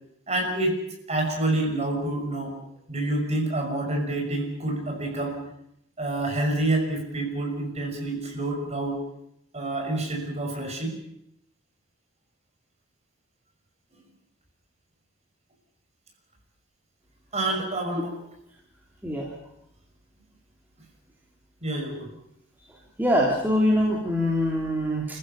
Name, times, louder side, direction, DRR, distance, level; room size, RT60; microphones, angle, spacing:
voice 1, 0.3-2.5 2.9-5.4 6.0-9.0 9.5-10.9 17.3-18.2 21.6-22.1, right 2 dB, 35° right, 2 dB, 6.2 m, -28 dB
voice 2, 23.0-25.1, equal, 10° right, -3 dB, 3.1 m, -23 dB
30.0 x 15.0 x 7.1 m, 0.77 s
head